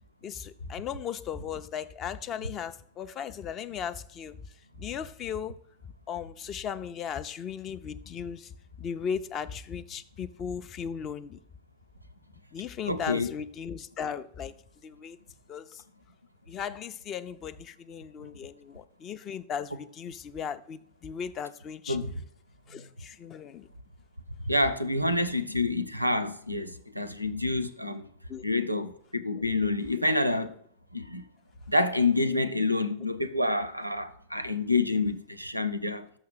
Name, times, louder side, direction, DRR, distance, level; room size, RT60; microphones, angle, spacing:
voice 1, 0.2-4.4 4.8-5.5 6.1-8.5 8.8-11.4 12.5-14.5 14.8-15.2 15.5-15.8 16.5-22.0 22.7-23.7 28.3-28.4, left 7 dB, 30° left, 0.4 m, -37 dB
voice 2, 12.9-13.3 21.9-22.1 24.4-28.1 28.4-30.5 30.9-31.3 31.7-36.1, left 2 dB, 90° right, 0.5 m, -28 dB
6.5 x 5.9 x 5.6 m
figure-of-eight pair, 90°, 0 cm